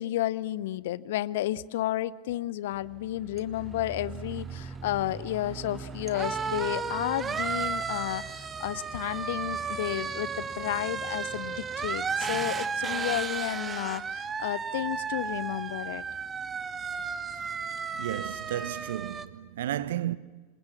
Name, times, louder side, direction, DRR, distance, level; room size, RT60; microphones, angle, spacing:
voice 1, 0.0-16.0, left 14 dB, 55° left, 0.7 m, -32 dB
sound 1, 2.8-19.3, right 5 dB, 20° right, 1.3 m, -34 dB
voice 2, 17.9-20.2, right 12 dB, 60° right, 1.0 m, -33 dB
27.5 x 26.5 x 7.3 m
figure-of-eight pair, 90°, 0 cm